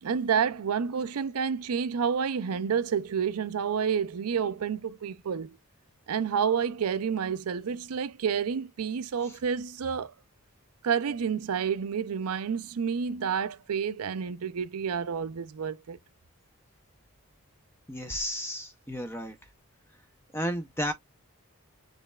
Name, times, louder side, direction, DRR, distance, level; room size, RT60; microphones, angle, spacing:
voice 1, 0.0-5.6 6.1-10.1 10.8-16.0, right 7 dB, 80° right, 0.5 m, -29 dB
voice 2, 17.9-19.3 20.3-20.9, equal, 10° left, 0.6 m, -32 dB
6.7 x 3.2 x 2.3 m
head